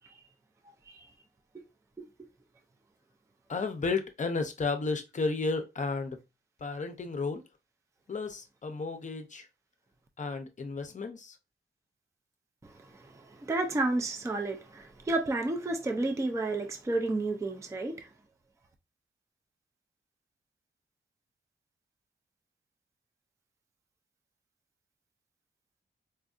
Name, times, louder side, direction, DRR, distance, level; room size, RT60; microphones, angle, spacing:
voice 1, 2.0-2.3 12.6-18.1, right 2 dB, 15° right, 0.4 m, -32 dB
voice 2, 3.5-6.2 6.6-7.4 8.1-9.5 10.2-11.4, left 4 dB, 40° left, 0.6 m, -33 dB
4.3 x 2.6 x 2.4 m
wide cardioid pair, 175°, 20 cm